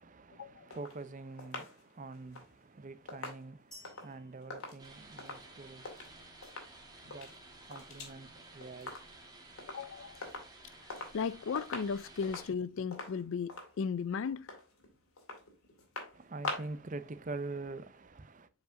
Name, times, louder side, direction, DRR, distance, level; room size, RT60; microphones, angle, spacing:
voice 1, 0.0-6.2 7.1-7.3 7.7-9.0 16.1-18.5, right 3 dB, 35° right, 0.6 m, -45 dB
sound 1, 0.7-6.1 6.4-6.8 7.0-8.2 8.4-9.3 9.6-9.9 10.2-11.2 11.5-16.9 17.2-17.3, left 3 dB, 85° left, 2.2 m, -45 dB
sound 2, 3.7-5.7, equal, 5° left, 1.8 m, -58 dB
sound 3, 4.8-12.5, right 2 dB, 20° right, 1.4 m, -54 dB
voice 2, 9.7-10.2 11.1-14.5, left 6 dB, 65° left, 0.4 m, -36 dB
7.2 x 5.2 x 2.6 m
head